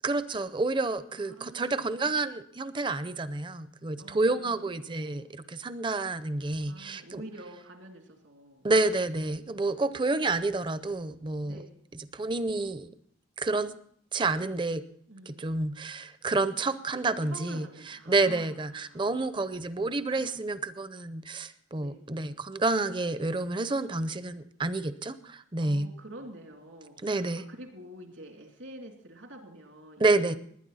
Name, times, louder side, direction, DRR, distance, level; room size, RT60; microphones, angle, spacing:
voice 1, 0.0-7.2 8.6-11.6 11.9-12.9 13.4-13.8 14.1-14.8 15.3-25.9 27.0-27.4 30.0-30.3, right 3 dB, 25° right, 13 dB, 0.6 m, -29 dB
voice 2, 1.1-2.2 4.0-5.3 6.6-8.7 11.4-11.7 15.1-15.6 17.2-19.4 20.1-20.4 21.8-22.1 25.6-30.3, right 1 dB, 80° right, 3 dB, 2.8 m, -48 dB
20.0 x 9.7 x 4.1 m, 0.65 s
head